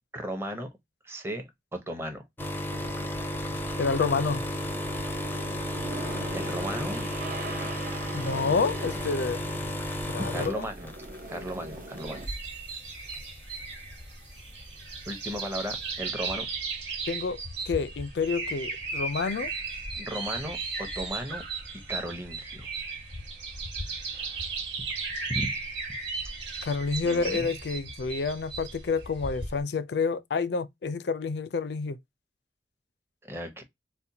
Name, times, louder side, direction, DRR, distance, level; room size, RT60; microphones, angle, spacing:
voice 1, 0.1-0.7 1.0-1.4 1.7-2.2 6.3-7.1 10.3-10.9 11.3-12.2 15.1-16.5 20.0-21.4 21.9-22.7 24.8-24.9 25.3-25.5 27.0-27.5 33.2-33.6, equal, 15° right, 0.8 m, -35 dB
sound 1, 2.4-11.6 12.0-12.2 13.1-13.2, left 1 dB, 10° left, 0.5 m, -33 dB
sound 2, 2.7-12.3, right 2 dB, 50° right, 0.6 m, -41 dB
voice 2, 3.8-4.4 8.1-9.4 10.1-10.7 17.1-17.4 17.7-19.5 26.7-32.0, left 4 dB, 65° left, 0.4 m, -28 dB
sound 3, 12.0-29.6, right 4 dB, 85° right, 1.4 m, -36 dB
4.2 x 2.1 x 2.6 m
head